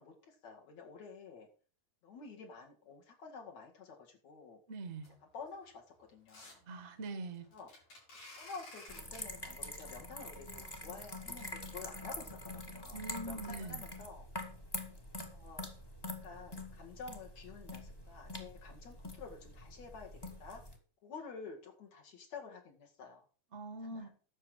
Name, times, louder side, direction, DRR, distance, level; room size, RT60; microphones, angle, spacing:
voice 1, 0.0-1.5 2.0-4.6 5.3-6.6 7.5-7.7 8.4-14.3 15.3-15.7 16.0-20.6 21.0-23.2 23.9-24.1, left 5 dB, 65° left, 3.2 m, -50 dB
voice 2, 4.7-5.1 6.7-7.5 12.9-13.8 23.5-24.1, right 2 dB, 40° right, 0.9 m, -43 dB
sound 1, 4.9-12.3 12.9-13.0 13.4-13.5 13.8-13.9 14.2-14.3 14.7-15.0 15.3-15.4 15.9-16.0, left 2 dB, 85° left, 7.1 m, -57 dB
sound 2, 8.9-20.8, left 1 dB, 15° left, 0.8 m, -45 dB
11.0 x 7.1 x 6.4 m
omnidirectional pair, 3.5 m